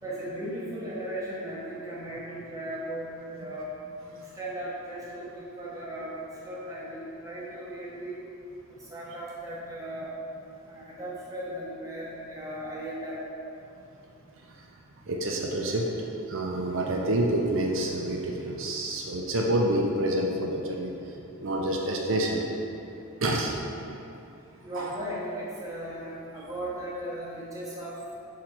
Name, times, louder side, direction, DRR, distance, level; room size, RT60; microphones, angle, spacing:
voice 1, 0.0-3.7 4.1-8.2 8.7-10.1 10.6-13.3 24.6-28.0, right 1 dB, 15° right, -7 dB, 1.0 m, -37 dB
voice 2, 15.1-15.9 16.3-22.5 23.2-23.5 24.7-24.9, right 1 dB, 60° right, -1 dB, 0.6 m, -28 dB
5.9 x 3.7 x 4.6 m, 2.8 s
head